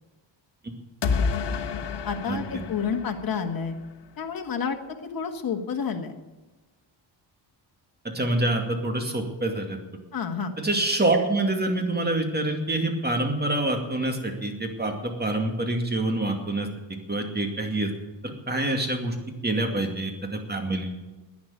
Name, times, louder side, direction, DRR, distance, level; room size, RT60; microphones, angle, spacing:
sound 1, 1.0-3.9, left 5 dB, 65° left, 1.3 m, -29 dB
voice 1, 2.0-3.7 4.2-4.8 5.1-6.2 10.1-10.5, left 6 dB, 50° left, 4 dB, 1.6 m, -29 dB
voice 2, 8.1-9.8 10.6-16.7 17.1-17.9 18.2-19.1 19.4-20.9, right 2 dB, 20° right, 3 dB, 2.4 m, -26 dB
11.0 x 9.8 x 9.1 m, 1.2 s
wide cardioid pair, 125°, 45 cm